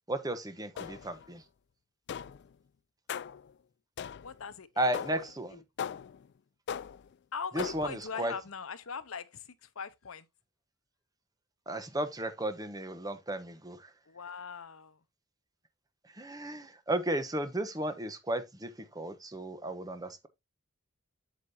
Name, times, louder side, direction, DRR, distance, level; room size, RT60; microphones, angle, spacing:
voice 1, 0.1-1.4 4.8-5.6 7.5-8.3 11.7-13.9 16.0-20.3, right 1 dB, 20° right, 1.0 m, -34 dB
sound 1, 0.8-1.3 2.1-2.5 3.1-3.5 4.0-4.4 4.9-5.3 5.8-6.3 6.7-7.1 7.6-8.0, left 8 dB, 55° left, 0.3 m, -39 dB
voice 2, 4.2-5.2 5.5-5.6 7.3-9.5 9.8-10.3 14.1-15.0, left 6 dB, 80° left, 0.8 m, -41 dB
8.1 x 7.3 x 2.7 m
head